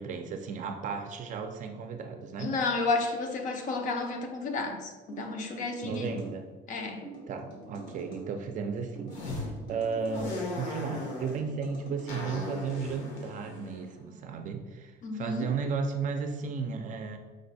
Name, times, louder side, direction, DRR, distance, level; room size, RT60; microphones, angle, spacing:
voice 1, 0.0-2.5 5.8-6.5 7.3-10.3 10.6-17.2, right 5 dB, 40° right, 5 dB, 0.4 m, -34 dB
voice 2, 2.4-6.2 6.7-7.1 15.0-15.5, left 3 dB, 45° left, 4 dB, 0.6 m, -31 dB
sound 1, 5.1-6.3 7.0-8.3 9.0-10.2 10.9-12.1, right 3 dB, 90° left, 1.5 m, -46 dB
sound 2, 9.1-9.5 10.1-11.4 12.1-14.5, left 2 dB, 75° left, 1.2 m, -38 dB
5.1 x 2.2 x 4.0 m, 1.3 s
cardioid pair, 140°, 19 cm